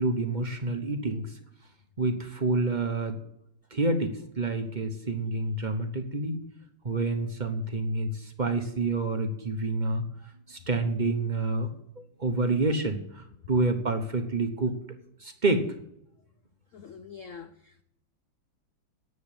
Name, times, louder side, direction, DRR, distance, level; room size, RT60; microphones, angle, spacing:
voice 1, 0.0-1.3 2.0-3.2 3.7-6.4 6.8-10.0 10.5-11.7 12.2-14.8 15.2-15.7, right 2 dB, 30° right, 0.9 m, -28 dB
voice 2, 16.7-17.8, left 6 dB, 75° left, 0.7 m, -45 dB
10.5 x 7.9 x 8.4 m
omnidirectional pair, 2.2 m